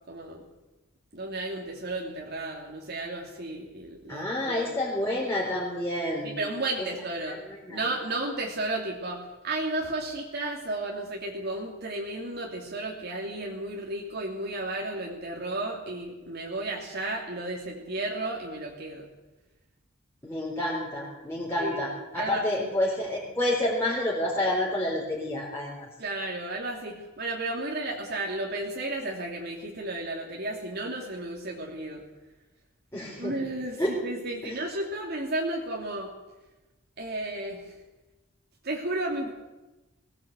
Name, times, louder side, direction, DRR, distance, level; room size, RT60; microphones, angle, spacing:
voice 1, 0.1-0.4 1.1-4.8 6.2-7.4 7.7-19.1 21.6-21.8 22.1-22.8 26.0-32.0 33.2-36.1 37.0-37.8 38.6-39.3, right 2 dB, 50° right, -1 dB, 2.7 m, -33 dB
voice 2, 4.1-6.3 7.7-7.8 20.2-21.9 22.1-25.9 32.9-33.3 33.8-33.9 34.4-34.5, left 1 dB, 10° left, -5 dB, 3.9 m, -29 dB
20.5 x 18.0 x 8.1 m, 1.1 s
head